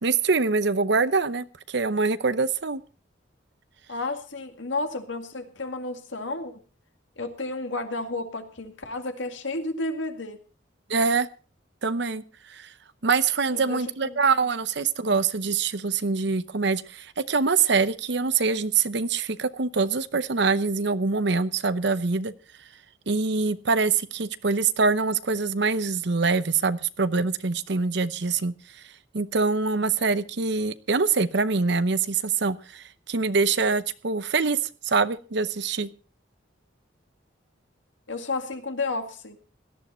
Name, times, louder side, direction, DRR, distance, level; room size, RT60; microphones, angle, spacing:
voice 1, 0.0-2.8 10.9-11.3 11.8-12.2 12.5-12.7 13.0-22.3 23.1-28.5 29.1-34.6 34.8-35.9, right 4 dB, 65° right, 14 dB, 0.8 m, -24 dB
voice 2, 3.9-6.6 7.2-10.4 13.5-14.2 38.1-39.4, left 2 dB, 80° left, 7 dB, 2.1 m, -32 dB
17.5 x 12.0 x 4.4 m, 0.37 s
head